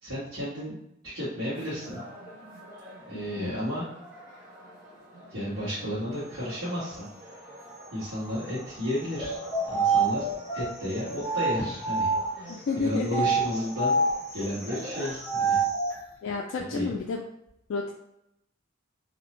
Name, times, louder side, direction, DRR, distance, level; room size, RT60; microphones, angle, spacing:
voice 1, 0.0-0.8 1.0-2.1 3.1-3.8 5.3-7.1 7.9-9.4 9.7-10.2 10.5-14.0 14.3-15.6 16.7-16.9, equal, 75° right, -14 dB, 1.4 m, -32 dB
sound 1, 1.5-15.1, equal, 40° right, 1.1 m, -46 dB
voice 2, 3.1-3.5 12.5-13.2 16.2-17.3 17.7-17.9, left 4 dB, 65° left, 0 dB, 0.3 m, -31 dB
sound 2, 9.1-12.5 13.1-16.0, right 3 dB, 15° left, 0.7 m, -27 dB
2.8 x 2.0 x 3.0 m, 0.81 s
head